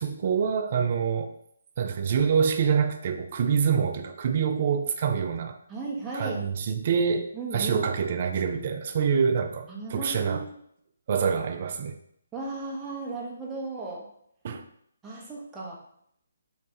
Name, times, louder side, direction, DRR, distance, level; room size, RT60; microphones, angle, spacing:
voice 1, 0.0-1.3 1.8-5.6 6.1-10.5 11.1-12.0 14.4-14.6, right 6 dB, 45° right, 7 dB, 0.4 m, -26 dB
voice 2, 5.7-6.4 7.3-7.8 9.7-10.5 12.3-14.1 15.0-15.8, right 3 dB, 10° right, -4 dB, 0.8 m, -35 dB
3.3 x 3.1 x 2.9 m, 0.69 s
figure-of-eight pair, 145°, 0 cm